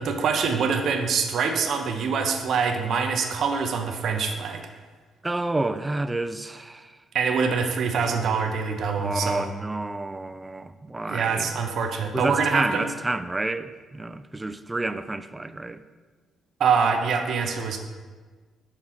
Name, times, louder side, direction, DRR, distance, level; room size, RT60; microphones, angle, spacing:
voice 1, 0.0-4.6 7.1-9.5 11.0-12.9 16.6-17.8, right 5 dB, 65° right, 4 dB, 0.7 m, -25 dB
voice 2, 5.2-6.9 9.0-11.5 12.1-15.8, right 2 dB, 15° right, 12 dB, 0.4 m, -29 dB
5.8 x 4.3 x 6.2 m, 1.4 s
cardioid pair, 90°, 0 cm